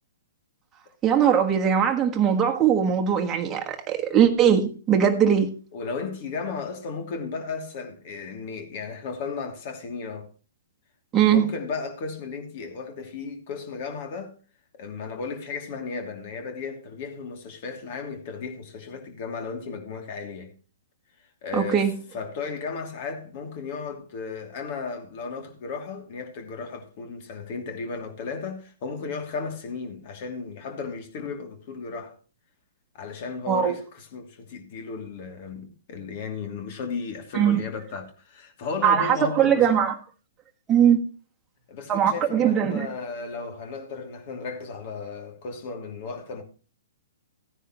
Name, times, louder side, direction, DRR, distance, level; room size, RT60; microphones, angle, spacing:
voice 1, 1.0-5.5 11.1-11.5 21.5-22.0 33.5-33.7 37.3-37.6 38.8-39.9 40.7-41.0 41.9-42.9, right 8 dB, 20° right, 1.4 m, -20 dB
voice 2, 5.7-10.3 11.3-14.3 14.8-20.5 21.4-21.9 22.1-32.2 32.9-39.8 41.7-46.4, left 4 dB, 45° left, 2.8 m, -35 dB
15.5 x 10.0 x 3.1 m
figure-of-eight pair, 120°, 0 cm